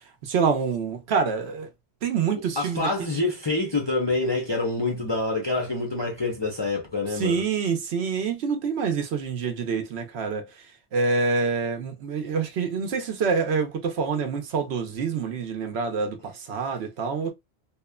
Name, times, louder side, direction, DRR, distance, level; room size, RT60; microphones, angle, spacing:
voice 1, 0.2-1.7 2.0-2.9 7.2-10.5 10.9-17.3, right 5 dB, 65° right, 0.8 m, -26 dB
voice 2, 2.6-7.4, left 3 dB, 35° left, 0.4 m, -26 dB
2.9 x 2.0 x 2.2 m
omnidirectional pair, 1.2 m